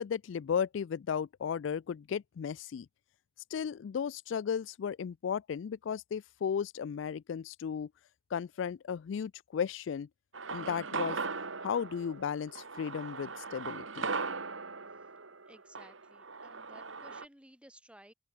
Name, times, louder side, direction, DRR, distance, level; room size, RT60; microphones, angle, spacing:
voice 1, 0.0-2.9 3.5-7.9 8.3-10.1 10.5-11.2 11.6-14.1, left 7 dB, 70° left, 0.3 m, -35 dB
sound 1, 10.3-17.2, right 4 dB, 80° right, 2.7 m, -39 dB
voice 2, 15.5-18.1, right 1 dB, 5° right, 6.7 m, -57 dB
open air
head